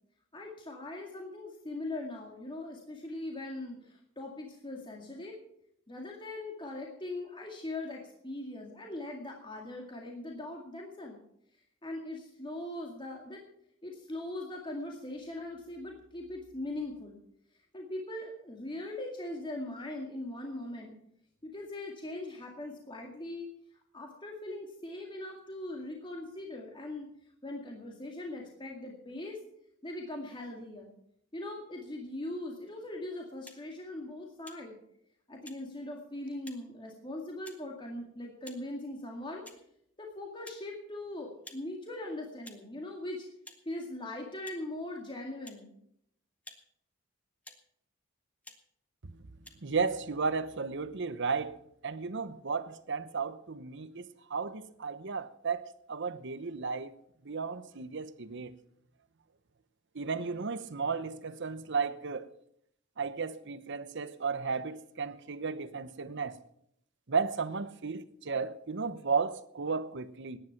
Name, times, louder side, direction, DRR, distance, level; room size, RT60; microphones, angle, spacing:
voice 1, 0.3-5.3 5.9-11.2 11.8-13.4 13.8-17.2 17.7-21.0 21.4-23.5 23.9-27.1 27.4-29.4 29.8-30.9 31.3-34.8 35.3-39.5 40.0-43.3 43.7-45.7, left 1 dB, 25° left, 2.1 m, -40 dB
sound 1, 33.4-33.6 34.4-34.6 35.4-35.6 36.4-36.6 37.4-37.6 38.4-38.6 39.4-39.6 40.4-40.6 41.4-41.6 42.4-42.6 43.4-43.6 44.4-44.6 45.4-45.6 46.4-46.6 47.4-47.6 48.4-48.6 49.4-49.5, left 1 dB, 5° left, 1.6 m, -50 dB
voice 2, 49.6-51.6 51.8-56.9 57.2-58.5 59.9-62.3 63.0-66.4 67.1-70.4, right 5 dB, 60° right, 0.9 m, -34 dB
17.5 x 10.5 x 5.9 m
head